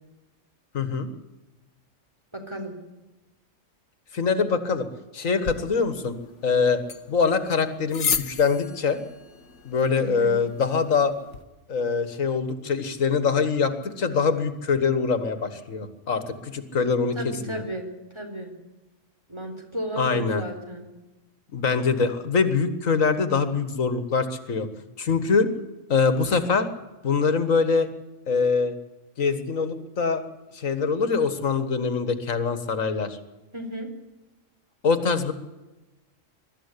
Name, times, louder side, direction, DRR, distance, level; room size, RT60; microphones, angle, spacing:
voice 1, 0.7-1.1 4.1-4.9 5.1-6.2 6.4-6.8 7.1-9.0 9.7-11.1 11.7-17.2 17.5-17.6 20.0-20.5 21.5-24.7 25.0-25.5 25.9-26.7 27.0-27.9 28.3-28.7 29.2-30.2 30.5-33.2 34.8-35.3, left 5 dB, 85° left, 10 dB, 2.0 m, -23 dB
voice 2, 2.3-2.7 10.0-10.4 17.1-18.5 19.3-20.9 33.5-33.9, equal, 20° right, 3 dB, 3.9 m, -34 dB
sound 1, 5.4-11.4, left 6 dB, 65° left, 1.5 m, -35 dB
22.5 x 13.0 x 9.9 m, 1.1 s
omnidirectional pair, 1.3 m